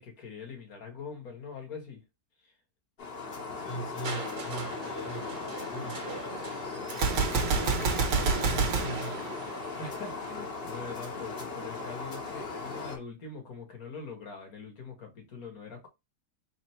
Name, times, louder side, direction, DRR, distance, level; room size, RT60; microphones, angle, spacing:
voice 1, 0.0-2.0 2.4-2.5 9.8-15.9, left 5 dB, 60° left, 1.6 m, -43 dB
sound 1, 3.0-13.0, left 3 dB, 40° left, 1.0 m, -38 dB
voice 2, 3.6-9.4, equal, 85° left, 1.8 m, -40 dB
Crushing, 4.0-9.9 10.9-11.0, right 5 dB, 55° right, 1.7 m, -45 dB
Gunshot gunfire, 6.9-10.0, right 4 dB, 80° right, 1.6 m, -28 dB
4.3 x 2.0 x 4.2 m
omnidirectional pair, 1.8 m